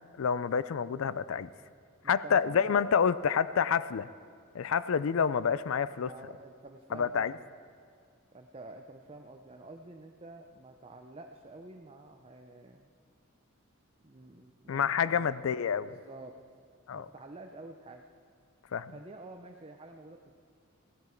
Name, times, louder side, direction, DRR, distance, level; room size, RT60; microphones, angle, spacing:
voice 1, 0.2-1.5 2.1-4.1 4.5-6.1 6.9-7.3 14.7-15.9 16.9-17.1 18.7-18.9, left 7 dB, 70° left, 16 dB, 0.4 m, -28 dB
voice 2, 2.0-2.9 6.0-7.5 8.3-12.9 14.0-15.5 15.8-16.4 16.9-18.1 18.9-20.4, right 2 dB, 30° right, 3 dB, 0.6 m, -49 dB
16.5 x 12.5 x 4.5 m, 2.2 s
head